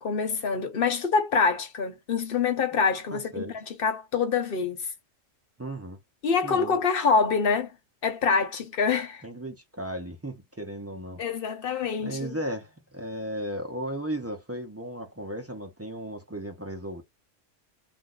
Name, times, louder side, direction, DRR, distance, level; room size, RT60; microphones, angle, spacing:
voice 1, 0.0-4.9 6.2-7.7 8.0-9.2 11.2-12.4, left 5 dB, 50° left, 0.9 m, -26 dB
voice 2, 3.1-3.5 5.6-6.0 6.4-6.8 9.2-11.2 12.0-17.0, right 1 dB, 20° right, 0.4 m, -35 dB
2.5 x 2.2 x 3.7 m
omnidirectional pair, 1.3 m